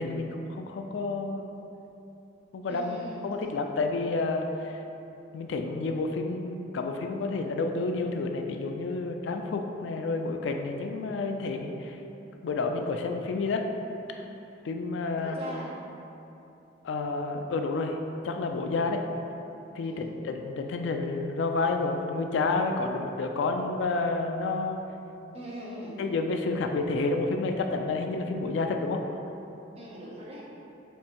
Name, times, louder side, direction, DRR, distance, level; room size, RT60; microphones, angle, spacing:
voice 1, 0.0-1.5 2.5-3.0 3.2-4.8 5.3-12.0 12.4-13.7 14.1-14.2 14.6-15.4 16.8-18.0 18.2-19.0 19.7-24.8 26.0-29.0, left 3 dB, 75° left, 4 dB, 0.3 m, -30 dB
voice 2, 2.7-3.2 15.1-15.7 19.8-20.1 25.3-26.0 29.8-30.5, equal, 35° right, -5 dB, 0.8 m, -41 dB
5.2 x 2.6 x 2.9 m, 3.0 s
head